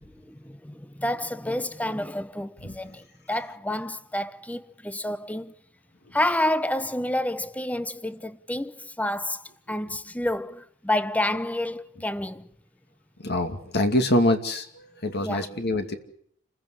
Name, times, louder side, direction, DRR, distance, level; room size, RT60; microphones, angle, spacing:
voice 1, 0.0-5.5 6.1-9.4 9.7-12.5 15.2-15.5, left 1 dB, 5° left, 0.9 m, -29 dB
voice 2, 13.2-15.9, left 1 dB, 50° left, 2.6 m, -25 dB
29.0 x 15.5 x 9.7 m
head